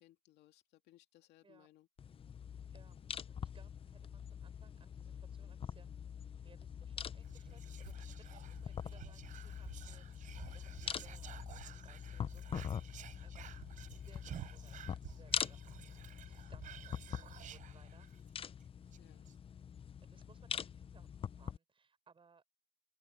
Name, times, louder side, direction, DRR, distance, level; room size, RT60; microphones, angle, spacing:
voice 1, 0.0-1.9 19.0-19.3, left 15 dB, 80° left, 2.6 m, -65 dB
sound 1, 2.0-21.6, left 7 dB, 35° left, 0.6 m, -44 dB
voice 2, 3.4-5.9 6.4-13.5 13.9-15.6 15.9-18.1 18.3-18.4 19.0-19.3 20.1-22.4, right 5 dB, 30° right, 7.1 m, -66 dB
Whispering, 7.2-18.3 18.6-18.7 18.9-19.3, right 11 dB, 50° right, 0.6 m, -53 dB
open air
cardioid pair, 110°, 17 cm